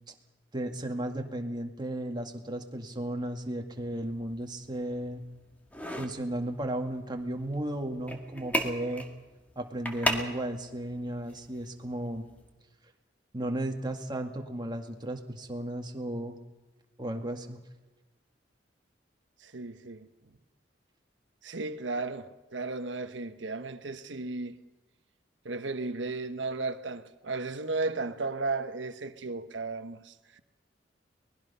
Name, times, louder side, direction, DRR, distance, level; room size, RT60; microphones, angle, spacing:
voice 1, 0.5-5.2 6.0-9.1 9.6-12.3 13.3-16.4 17.0-17.6, right 1 dB, 25° right, 2.0 m, -34 dB
sound 1, 3.7-12.5, equal, 10° left, 2.0 m, -38 dB
voice 2, 19.4-20.4 21.4-24.6 25.4-30.4, right 3 dB, 80° right, 1.2 m, -35 dB
24.0 x 20.0 x 5.6 m
head